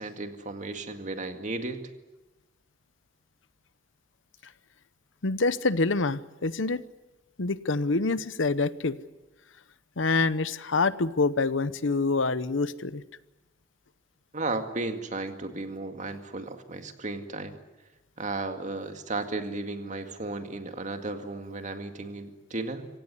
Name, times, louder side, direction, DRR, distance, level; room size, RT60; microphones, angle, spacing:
voice 1, 0.0-1.8 14.3-17.6 18.2-22.9, right 2 dB, 40° right, 7 dB, 2.1 m, -34 dB
voice 2, 5.2-6.8 7.4-9.0 10.0-13.0, left 3 dB, 70° left, 15 dB, 0.9 m, -26 dB
26.0 x 17.5 x 9.9 m, 1.1 s
head